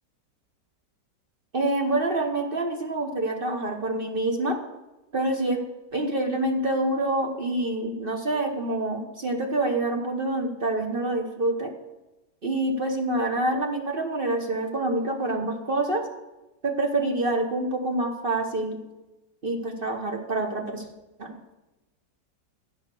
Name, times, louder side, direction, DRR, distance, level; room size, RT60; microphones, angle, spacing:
voice 1, 1.5-4.6 5.1-5.6 5.9-11.7 12.4-16.0 16.6-18.8 19.4-20.8 21.2-21.3, right 2 dB, 35° right, 3 dB, 1.1 m, -26 dB
15.0 x 5.1 x 6.8 m, 1.0 s
omnidirectional pair, 2.1 m